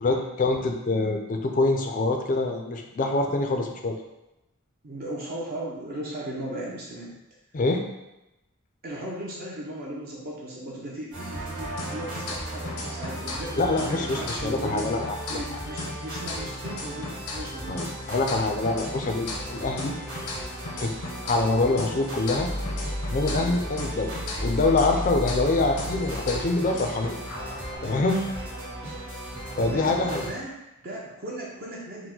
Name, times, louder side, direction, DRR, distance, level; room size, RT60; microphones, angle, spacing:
voice 1, 0.0-4.0 7.5-7.8 13.6-15.2 17.7-19.9 20.8-20.9 21.2-22.5 23.1-27.1 27.8-28.2 29.6-30.2, left 2 dB, 35° left, 3 dB, 0.4 m, -25 dB
voice 2, 4.8-7.2 8.8-15.0 15.3-17.9 23.1-23.5 29.6-32.1, right 1 dB, 40° right, -4 dB, 0.6 m, -37 dB
sound 1, 11.1-30.3, equal, 75° right, 1.5 m, -35 dB
sound 2, 11.8-13.5 13.8-17.5 17.8-21.5 21.8-25.5 25.8-27.8, left 2 dB, 85° left, 0.7 m, -37 dB
4.7 x 2.1 x 3.8 m, 0.95 s
head